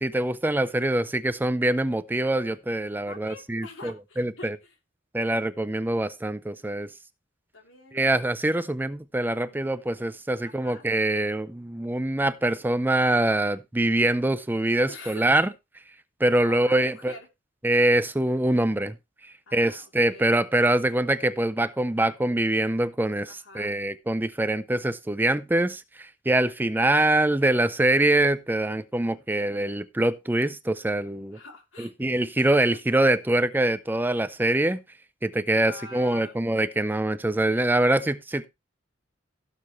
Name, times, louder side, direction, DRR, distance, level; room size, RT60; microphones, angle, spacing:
voice 1, 0.0-4.6 5.1-6.9 7.9-15.5 16.2-17.1 17.6-19.0 19.5-31.4 31.8-34.8 35.2-38.5, right 1 dB, 10° right, 0.5 m, -24 dB
voice 2, 3.1-4.8 7.5-8.1 9.4-9.6 10.4-10.8 14.9-15.2 16.4-17.3 19.5-20.4 20.7-21.2 23.2-23.7 31.3-31.9 32.7-32.8 35.6-36.4, left 3 dB, 85° left, 3.1 m, -45 dB
16.5 x 6.9 x 3.1 m
head